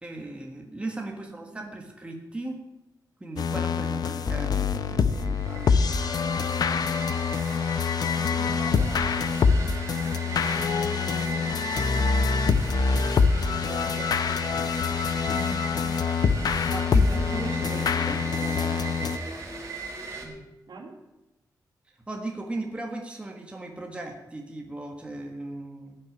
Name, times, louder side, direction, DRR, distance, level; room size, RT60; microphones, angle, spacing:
voice 1, 0.0-2.6 3.2-5.8 16.7-17.8 18.1-18.2 20.2-20.5 21.9-26.0, right 2 dB, 15° right, 2 dB, 1.6 m, -37 dB
voice 2, 1.1-1.9 5.0-5.4 8.1-11.7 13.2-15.4 16.5-19.5 20.7-21.0, right 3 dB, 75° right, 1 dB, 3.3 m, -45 dB
sound 1, 3.4-19.2, left 5 dB, 65° left, 0.7 m, -25 dB
sound 2, 5.1-20.2, right 4 dB, 40° right, 3.9 m, -38 dB
sound 3, 14.4-20.4, left 2 dB, 25° left, 1.3 m, -44 dB
15.5 x 6.4 x 9.9 m, 0.99 s
wide cardioid pair, 165°, 7 cm